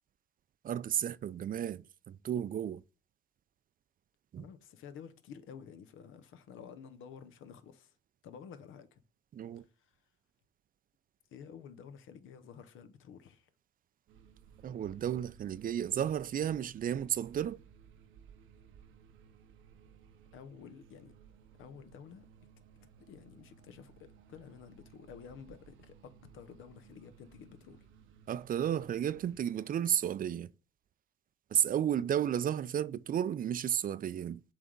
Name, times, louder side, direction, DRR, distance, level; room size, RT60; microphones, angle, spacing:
voice 1, 0.6-2.8 4.3-4.4 9.3-9.6 14.6-17.6 28.3-30.5 31.5-34.4, right 10 dB, 45° right, 0.4 m, -33 dB
voice 2, 4.4-8.0 8.2-9.0 9.5-10.0 11.3-13.5 20.3-21.1 21.6-22.3 23.0-27.9, left 7 dB, 85° left, 0.8 m, -51 dB
sound 1, 14.1-29.5, right 7 dB, 80° right, 0.7 m, -59 dB
7.3 x 3.4 x 3.9 m
cardioid pair, 90°, 20 cm